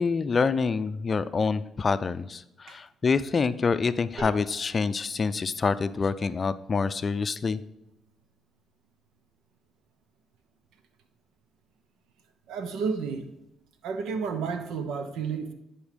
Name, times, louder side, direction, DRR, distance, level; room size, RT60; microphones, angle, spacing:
voice 1, 0.0-7.6, left 4 dB, 40° left, 13 dB, 0.4 m, -26 dB
sound 1, 4.2-9.7, right 1 dB, 70° right, 2.1 m, -48 dB
voice 2, 12.5-13.3 13.8-15.5, right 5 dB, 85° right, 8 dB, 0.9 m, -31 dB
10.5 x 4.5 x 5.1 m, 0.86 s
cardioid pair, 90°, 0 cm